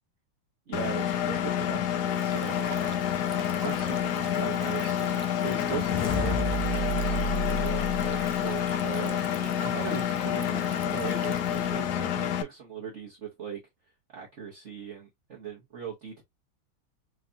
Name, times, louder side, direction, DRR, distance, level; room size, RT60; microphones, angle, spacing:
Engine, 0.7-12.4, left 10 dB, 75° left, 0.9 m, -28 dB
voice 1, 0.7-2.9 3.6-13.6 13.9-16.2, right 7 dB, 60° right, 0.7 m, -40 dB
Stream, 2.1-11.9, right 11 dB, 80° right, 1.5 m, -45 dB
sound 1, 5.4-8.7, equal, 55° left, 1.2 m, -31 dB
4.6 x 2.6 x 2.5 m
omnidirectional pair, 2.4 m